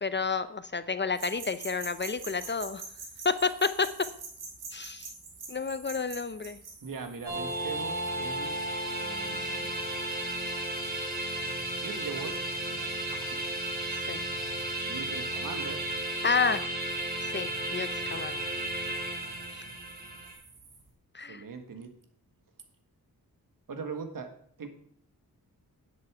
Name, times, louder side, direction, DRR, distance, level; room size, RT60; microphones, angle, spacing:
voice 1, 0.0-2.8 3.2-3.9 4.7-5.1 5.5-6.6 14.1-14.2 16.2-16.6 17.3-18.4 19.5-19.6 21.1-21.4, left 4 dB, 30° left, 13 dB, 0.6 m, -30 dB
sound 1, 1.1-20.9, right 4 dB, 90° right, 2.9 m, -48 dB
voice 2, 6.8-8.6 9.0-9.7 11.8-12.4 12.7-13.4 14.9-15.8 21.3-21.9 23.7-24.7, right 5 dB, 65° right, 7 dB, 1.7 m, -41 dB
sound 2, 7.2-20.3, right 1 dB, 25° right, 4.5 m, -34 dB
10.0 x 8.2 x 5.0 m, 0.63 s
wide cardioid pair, 90°, 36 cm